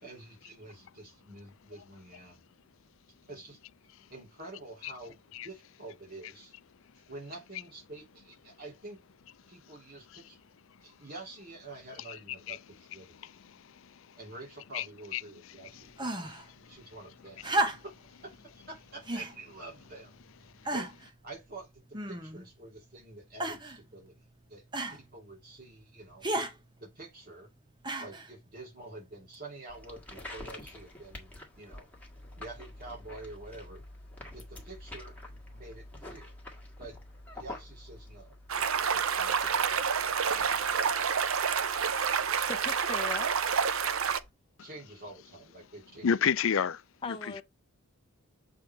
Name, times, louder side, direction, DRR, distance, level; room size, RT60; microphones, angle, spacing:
voice 1, 0.0-2.4 3.3-3.6 4.1-5.2 5.4-6.5 7.1-9.0 9.5-10.4 10.8-13.2 14.2-16.3 16.7-17.5 17.8-21.8 22.1-24.6 24.9-26.2 26.8-27.5 28.0-31.9 32.4-33.8 34.3-36.4 36.8-37.0 37.3-40.1 44.6-46.1 47.3-47.4, right 2 dB, 40° right, 3.0 m, -48 dB
voice 2, 13.2-13.9 14.7-14.8 15.1-15.2 16.6-16.7 46.0-46.8 47.1-47.2, left 7 dB, 60° left, 0.4 m, -29 dB
sound 1, 16.0-16.5 17.4-18.1 19.0-19.4 20.1-20.2 20.6-21.1 21.9-22.5 23.4-23.8 24.7-25.0 26.2-26.5 27.8-28.3 29.3-29.4, right 1 dB, 20° right, 0.8 m, -32 dB
sound 2, 29.7-44.3, left 1 dB, 5° left, 1.6 m, -48 dB
sound 3, 38.5-44.2, right 6 dB, 65° right, 0.6 m, -28 dB
voice 3, 41.7-42.2 42.5-43.4 47.0-47.4, left 4 dB, 25° left, 0.7 m, -40 dB
7.3 x 3.7 x 4.5 m
head